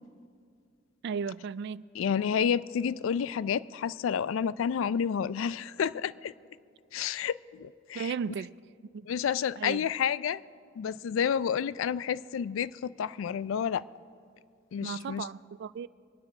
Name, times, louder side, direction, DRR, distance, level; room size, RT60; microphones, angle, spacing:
voice 1, 1.0-1.9 7.9-8.5 8.9-9.1 9.6-9.9 14.8-15.9, right 6 dB, 60° right, 0.3 m, -35 dB
voice 2, 2.0-6.3 6.9-8.1 9.1-10.4 10.8-13.8 14.7-15.3, left 7 dB, 75° left, 0.3 m, -30 dB
23.5 x 9.6 x 4.9 m
head